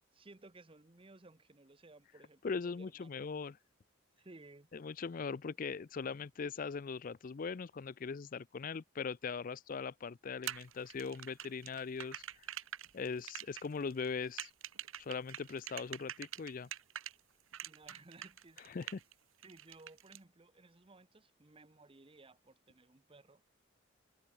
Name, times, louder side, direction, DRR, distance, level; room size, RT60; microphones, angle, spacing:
voice 1, 0.1-3.2 4.2-4.7 5.3-5.4 17.6-18.9 19.4-23.4, right 2 dB, 25° right, 0.9 m, -58 dB
voice 2, 2.4-3.6 4.7-12.5 12.9-14.5 15.0-16.7 18.7-19.0, left 5 dB, 45° left, 0.4 m, -40 dB
sound 1, 10.4-17.1 17.5-19.1 19.4-20.2, right 11 dB, 90° right, 1.1 m, -45 dB
head